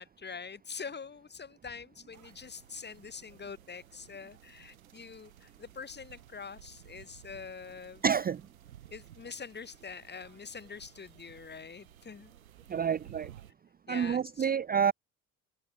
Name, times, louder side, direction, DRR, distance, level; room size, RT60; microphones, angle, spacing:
voice 1, 0.0-8.0 8.9-12.3 13.9-14.6, left 5 dB, 25° left, 1.8 m, -45 dB
sound 1, 2.1-13.5, right 11 dB, 80° right, 4.5 m, -56 dB
voice 2, 8.0-8.4 12.7-13.3 13.9-14.9, right 7 dB, 20° right, 0.6 m, -28 dB
figure-of-eight pair, 55°, 42 cm